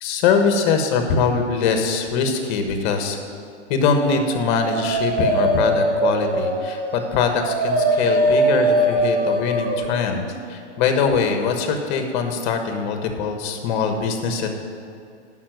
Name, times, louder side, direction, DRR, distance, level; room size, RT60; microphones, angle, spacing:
voice 1, 0.0-3.2 3.7-14.5, left 5 dB, 40° left, 5 dB, 1.4 m, -22 dB
Dog, 4.2-9.8, right 1 dB, 25° right, 1.8 m, -21 dB
10.0 x 5.7 x 7.9 m, 2.3 s
hypercardioid pair, 135°, 35 cm